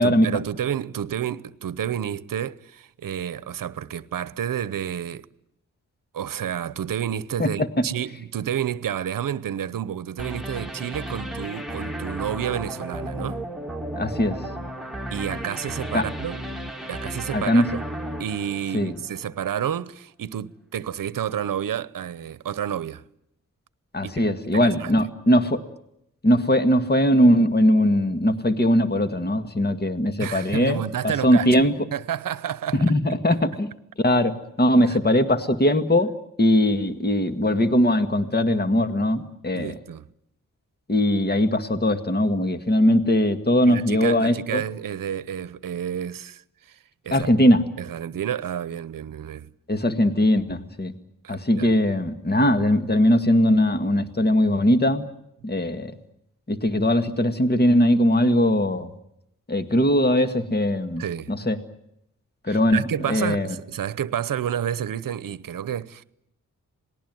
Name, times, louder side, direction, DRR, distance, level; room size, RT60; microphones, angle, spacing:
voice 1, 0.0-5.3 6.1-13.4 15.1-16.4 16.9-17.8 18.2-23.0 24.0-24.2 24.5-24.9 30.2-31.6 31.9-32.9 33.3-33.4 34.9-35.0 39.5-40.1 43.7-46.8 47.0-47.4 47.8-49.5 51.2-51.7 61.0-61.3 62.5-66.0, right 9 dB, 80° right, 0.9 m, -30 dB
sound 1, 10.2-19.2, right 1 dB, ahead, 2.5 m, -34 dB
voice 2, 14.0-14.5 15.9-16.0 17.3-17.7 18.7-18.9 23.9-25.6 26.2-30.8 31.2-31.7 32.8-33.7 34.0-36.1 36.4-39.8 40.9-44.6 47.1-47.6 49.7-50.9 51.3-55.1 55.4-55.9 56.5-58.9 59.5-61.6 62.4-63.5, left 1 dB, 30° left, 2.0 m, -20 dB
27.0 x 19.5 x 9.3 m
cardioid pair, 45°, 32 cm